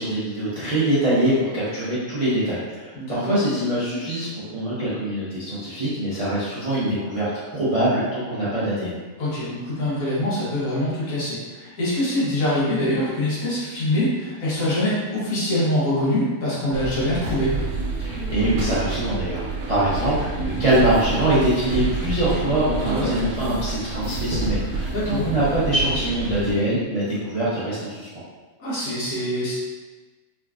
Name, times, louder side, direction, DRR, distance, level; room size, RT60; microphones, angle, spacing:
voice 1, 0.0-9.0 18.0-28.1, right 1 dB, 60° right, -10 dB, 0.3 m, -23 dB
voice 2, 2.9-3.4 9.2-17.6 22.8-23.2 24.9-25.3 28.6-29.5, left 1 dB, 65° left, -9 dB, 1.5 m, -24 dB
sound 1, 16.7-26.5, right 3 dB, 90° right, 1.2 m, -28 dB
3.5 x 2.5 x 2.3 m, 1.3 s
omnidirectional pair, 1.6 m